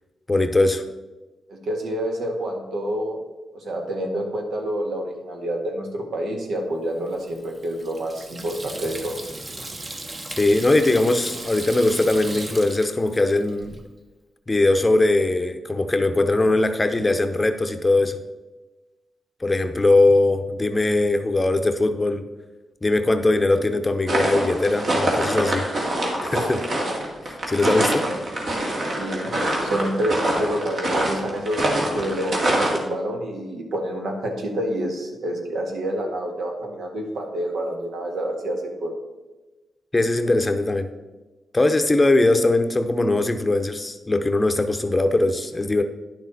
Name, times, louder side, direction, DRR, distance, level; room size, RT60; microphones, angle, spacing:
voice 1, 0.3-0.8 10.4-13.8 14.5-18.2 19.4-22.2 22.8-25.7 26.2-26.6 27.2-28.1 39.9-40.9 41.5-45.8, left 2 dB, 20° left, 8 dB, 0.7 m, -20 dB
voice 2, 1.5-3.2 3.5-9.2 28.9-29.3 29.6-38.9, right 1 dB, 80° right, 2 dB, 1.7 m, -28 dB
Water tap faucet / Sink (filling or washing), 7.1-13.8, right 2 dB, 35° right, 1.0 m, -37 dB
sound 1, 24.1-32.8, right 1 dB, 55° right, 2.1 m, -25 dB
10.5 x 6.3 x 4.1 m, 1.1 s
cardioid pair, 95°, 0 cm